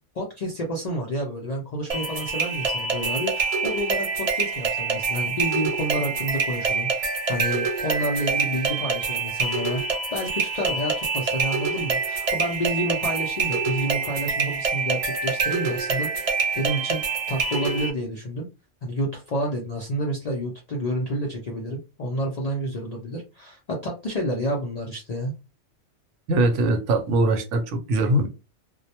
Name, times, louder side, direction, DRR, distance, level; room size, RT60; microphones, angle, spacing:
voice 1, 0.2-9.8 10.1-17.0 17.3-18.5 18.8-25.3, equal, 60° left, 0.4 m, -29 dB
sound 1, 1.9-17.9, right 4 dB, 60° right, 0.4 m, -26 dB
voice 2, 26.3-28.3, right 2 dB, 75° right, 0.9 m, -21 dB
2.2 x 2.0 x 2.8 m
omnidirectional pair, 1.3 m